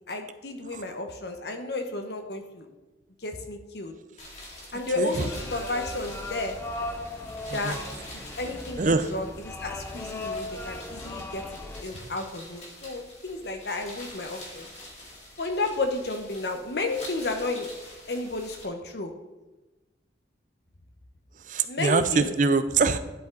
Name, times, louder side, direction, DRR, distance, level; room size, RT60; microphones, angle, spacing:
voice 1, 0.1-2.7 3.2-3.9 4.7-6.6 7.5-7.8 8.1-11.4 11.8-14.7 15.4-17.7 18.1-19.1 21.6-22.3, left 2 dB, 60° left, 5 dB, 1.1 m, -32 dB
sound 1, 4.2-18.6, left 1 dB, 40° left, 2.3 m, -45 dB
sound 2, 5.3-11.8, left 1 dB, 15° left, 0.6 m, -38 dB
voice 2, 8.8-9.1 21.4-23.0, right 4 dB, 45° right, 11 dB, 0.5 m, -24 dB
11.0 x 5.0 x 3.9 m, 1.1 s
head